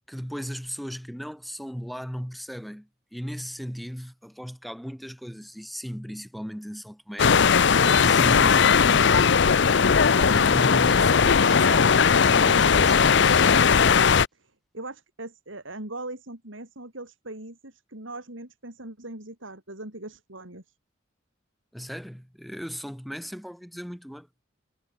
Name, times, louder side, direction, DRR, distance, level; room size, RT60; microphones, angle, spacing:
voice 1, 0.1-7.5 7.8-12.0 12.3-13.4 21.7-24.3, equal, ahead, 2.7 m, -36 dB
sound 1, 7.2-14.3, left 6 dB, 60° left, 0.6 m, -18 dB
voice 2, 14.3-20.7, right 2 dB, 70° right, 4.9 m, -40 dB
head